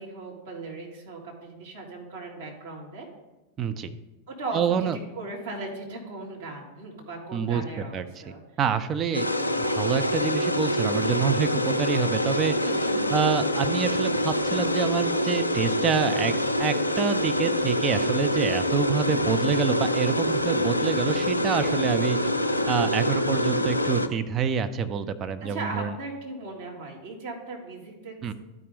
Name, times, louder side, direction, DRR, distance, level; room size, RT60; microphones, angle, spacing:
voice 1, 0.0-3.1 4.3-4.9 5.1-8.4 12.5-13.3 25.4-28.1, right 2 dB, 60° right, -3 dB, 2.4 m, -37 dB
voice 2, 3.6-3.9 4.5-5.0 7.3-8.0 8.6-9.3 9.6-12.6 13.1-16.3 16.6-22.2 22.7-25.9 28.2-28.3, right 6 dB, 25° right, 9 dB, 0.5 m, -27 dB
sound 1, 9.1-24.1, left 1 dB, 85° left, 0.4 m, -26 dB
12.5 x 5.0 x 3.4 m, 1.1 s
figure-of-eight pair, 90°, 0 cm